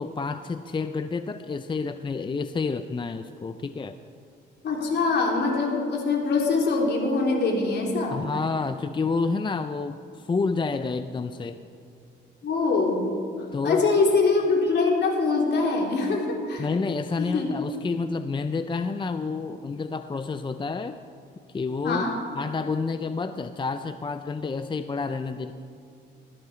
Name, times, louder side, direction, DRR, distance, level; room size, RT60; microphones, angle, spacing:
voice 1, 0.0-4.0 8.1-11.7 13.5-13.8 16.6-21.0 21.5-22.0 22.4-25.5, left 4 dB, 25° left, 10 dB, 0.6 m, -29 dB
voice 2, 4.6-8.2 12.4-13.0 13.6-16.7 17.2-17.5 21.8-22.1, left 3 dB, 60° left, 0 dB, 3.5 m, -23 dB
20.0 x 15.0 x 4.4 m, 2.5 s
cardioid pair, 90°, 20 cm